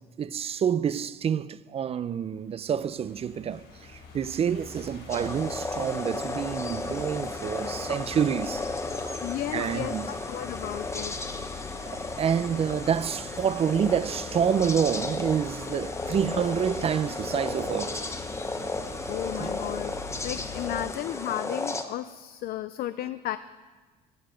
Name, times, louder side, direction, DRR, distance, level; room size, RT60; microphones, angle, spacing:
voice 1, 0.0-3.6 3.9-8.6 9.0-9.2 9.5-10.1 12.2-18.0 19.3-19.6, right 8 dB, 35° right, 0.4 m, -28 dB
sound 1, 2.5-20.9, left 4 dB, 90° left, 4.7 m, -44 dB
sound 2, 5.1-21.8, left 3 dB, 15° left, 1.0 m, -34 dB
voice 2, 9.2-11.1 19.1-19.9 20.2-23.4, left 13 dB, 60° left, 0.4 m, -34 dB
13.0 x 10.0 x 5.1 m
cardioid pair, 110°, 17 cm